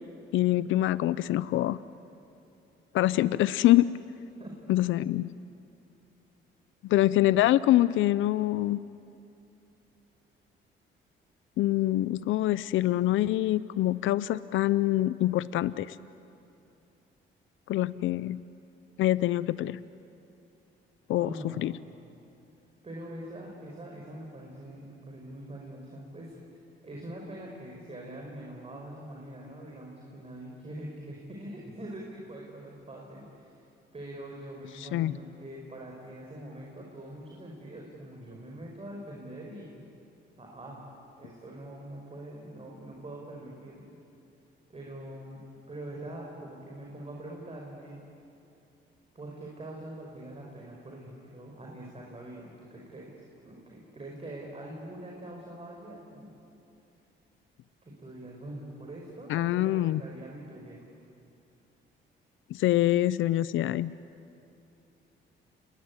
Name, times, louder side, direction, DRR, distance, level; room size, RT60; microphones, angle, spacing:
voice 1, 0.3-1.8 2.9-3.9 4.7-5.3 6.8-8.8 11.6-16.0 17.7-18.4 19.0-19.8 21.1-21.3 21.6-21.7 34.8-35.2 59.3-60.0 62.5-63.9, left 15 dB, 80° left, 16 dB, 0.6 m, -25 dB
voice 2, 21.2-21.6 22.8-26.4 26.8-33.5 33.9-39.7 40.4-40.8 41.2-43.9 44.7-45.4 45.7-48.0 49.2-53.1 53.4-56.4 57.8-60.8, right 1 dB, 30° right, -2 dB, 5.5 m, -43 dB
29.5 x 21.0 x 9.7 m, 2.7 s
cardioid pair, 90°, 20 cm